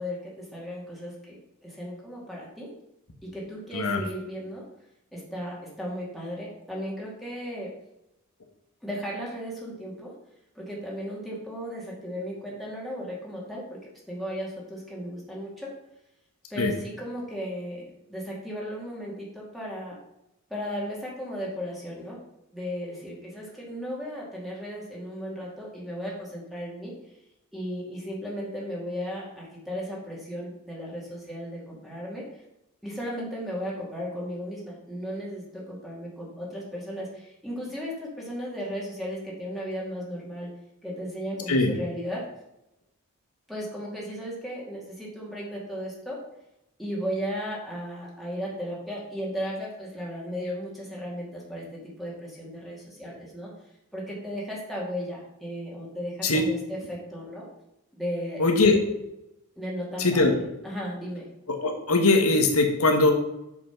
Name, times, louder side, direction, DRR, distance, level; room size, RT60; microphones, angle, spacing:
voice 1, 0.0-1.4 1.6-2.7 3.2-4.6 5.1-7.7 8.8-10.1 10.6-13.8 14.1-15.7 16.5-17.8 18.1-20.0 20.5-22.2 22.5-26.9 27.5-32.2 32.8-40.5 40.8-42.2 43.5-46.2 46.8-53.5 53.9-57.5 57.9-58.4 59.6-61.3, equal, ahead, -5 dB, 2.3 m, -35 dB
voice 2, 58.4-58.8 60.0-60.3 61.5-63.1, left 3 dB, 80° left, 4 dB, 1.6 m, -21 dB
7.0 x 6.1 x 5.9 m, 0.87 s
head